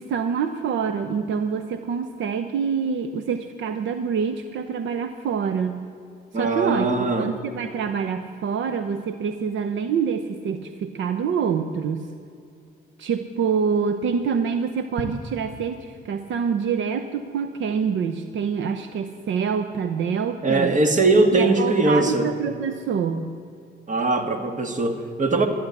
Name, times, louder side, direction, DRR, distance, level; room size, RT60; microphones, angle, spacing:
voice 1, 0.0-5.8 6.3-12.1 13.0-20.7 21.3-23.3, right 6 dB, 70° right, 9 dB, 0.8 m, -26 dB
voice 2, 6.3-7.3 20.4-22.3 23.9-25.5, right 3 dB, 40° right, 6 dB, 1.7 m, -20 dB
14.0 x 10.5 x 8.2 m, 2.3 s
cardioid pair, 90°, 20 cm